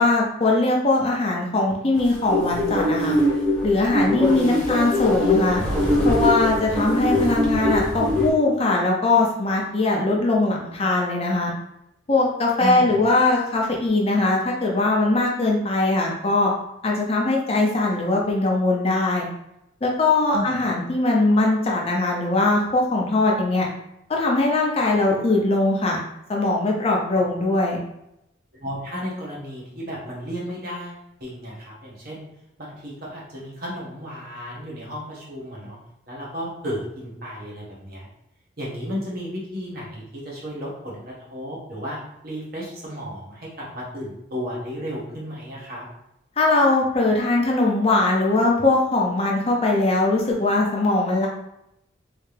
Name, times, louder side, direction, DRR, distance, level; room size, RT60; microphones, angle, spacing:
voice 1, 0.0-3.2 3.6-5.6 6.0-11.5 12.1-16.5 16.8-19.3 19.8-23.7 24.1-26.0 26.3-27.8 46.4-51.3, left 2 dB, 30° left, -2 dB, 0.6 m, -21 dB
sound 1, 2.0-8.3, left 1 dB, 5° left, 1.0 m, -22 dB
voice 2, 4.0-4.7 12.6-12.9 20.2-20.6 28.6-32.2 32.6-35.8 36.1-38.1 38.6-42.0 42.2-45.9, equal, 50° right, -4 dB, 1.2 m, -33 dB
3.3 x 2.8 x 3.3 m, 0.82 s
head